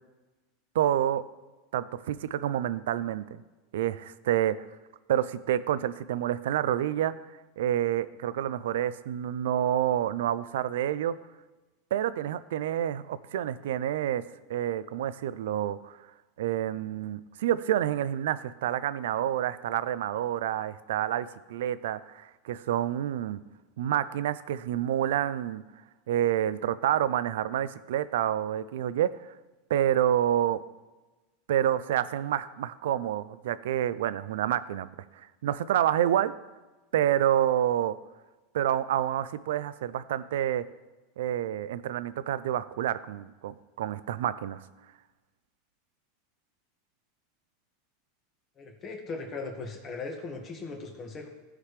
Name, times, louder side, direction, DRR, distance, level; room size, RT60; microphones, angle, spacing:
voice 1, 0.7-1.2 1.7-3.4 3.7-4.6 5.1-7.1 7.6-11.2 11.9-14.2 14.5-16.0 16.4-23.4 23.8-25.6 26.1-29.1 29.7-30.6 31.5-34.9 35.2-36.3 36.9-38.0 38.5-40.6 41.2-44.6, right 11 dB, 80° right, 16 dB, 0.4 m, -28 dB
voice 2, 48.6-51.3, left 3 dB, 30° left, 2 dB, 1.7 m, -38 dB
14.5 x 4.9 x 3.2 m, 1.2 s
supercardioid pair, 130°, 0 cm